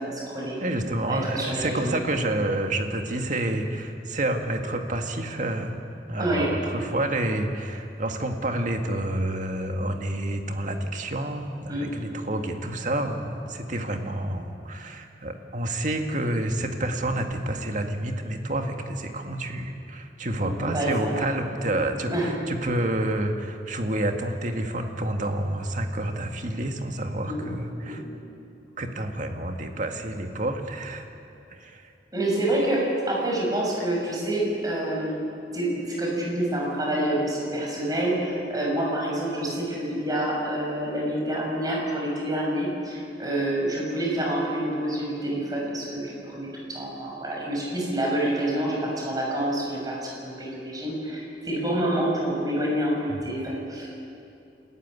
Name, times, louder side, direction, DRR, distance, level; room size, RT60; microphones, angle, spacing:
voice 1, 0.0-0.6 1.1-2.0 6.2-6.5 11.7-11.9 20.4-21.2 21.7-21.8 22.0-22.3 27.3-27.4 27.8-28.0 32.1-32.8 33.1-35.2 35.5-53.9, right 1 dB, 20° right, -3 dB, 6.7 m, -27 dB
voice 2, 0.6-5.8 6.1-28.0 28.8-31.1 31.5-31.9 53.1-53.3, right 1 dB, 45° right, 4 dB, 2.0 m, -29 dB
28.0 x 15.0 x 9.6 m, 2.6 s
head